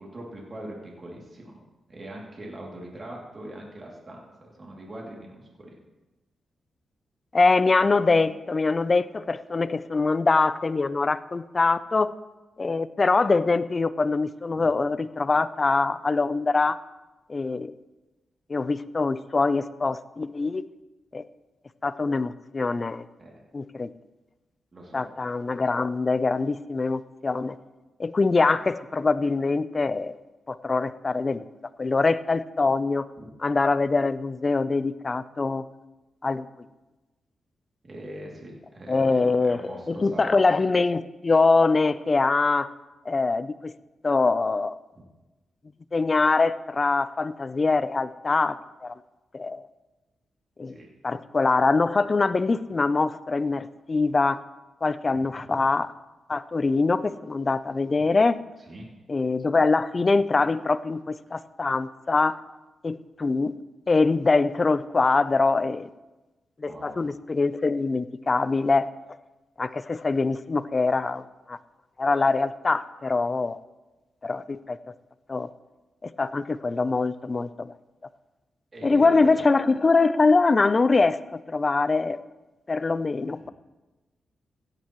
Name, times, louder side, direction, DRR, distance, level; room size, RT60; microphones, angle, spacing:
voice 1, 0.0-1.6 1.9-5.7 14.5-14.7 23.2-23.4 24.7-25.1 33.2-33.3 37.8-40.7 44.9-45.0 50.7-50.9 58.0-58.1 58.7-58.8 66.7-67.1 78.7-79.4 83.4-83.5, right 1 dB, 40° right, -3 dB, 2.7 m, -41 dB
voice 2, 7.3-12.1 12.6-16.8 17.3-17.7 18.5-20.6 21.1-21.2 21.8-23.0 23.5-23.9 24.9-27.6 28.0-30.2 30.5-31.5 31.8-33.1 33.4-35.6 36.2-36.5 38.9-39.6 39.9-42.7 43.1-43.7 44.0-44.8 45.9-48.9 49.3-49.7 50.6-50.8 51.0-54.4 54.8-55.9 56.3-58.4 59.1-62.4 62.8-63.5 63.9-65.9 66.6-68.9 69.6-71.6 72.0-73.6 74.2-74.8 75.3-75.5 76.0-77.7 78.8-82.2 82.7-83.5, left 3 dB, 40° left, 14 dB, 0.5 m, -23 dB
17.0 x 10.5 x 3.1 m, 1.1 s
cardioid pair, 65°, 0 cm